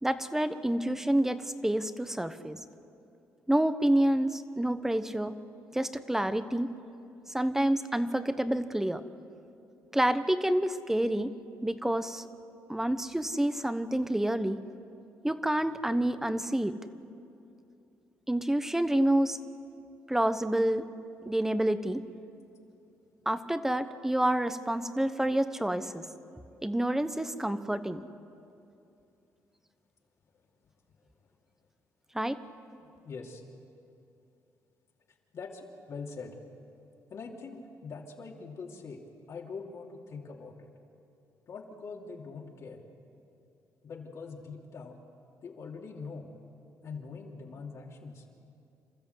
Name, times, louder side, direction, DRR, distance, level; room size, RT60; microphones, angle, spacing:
voice 1, 0.0-2.6 3.5-5.4 5.7-6.7 7.3-9.0 9.9-11.3 11.6-12.3 12.7-14.6 15.2-16.8 18.3-19.4 20.1-20.9 21.2-22.0 23.3-26.0 26.6-28.1 32.1-32.4, right 1 dB, 5° right, 11 dB, 1.0 m, -28 dB
voice 2, 32.8-33.4 35.3-36.4 37.1-39.0 39.3-40.7 41.5-42.8 43.8-45.0 45.4-46.3 46.8-48.2, left 4 dB, 60° left, 0 dB, 2.9 m, -43 dB
28.0 x 13.5 x 8.2 m, 2.7 s
cardioid pair, 90°, 6 cm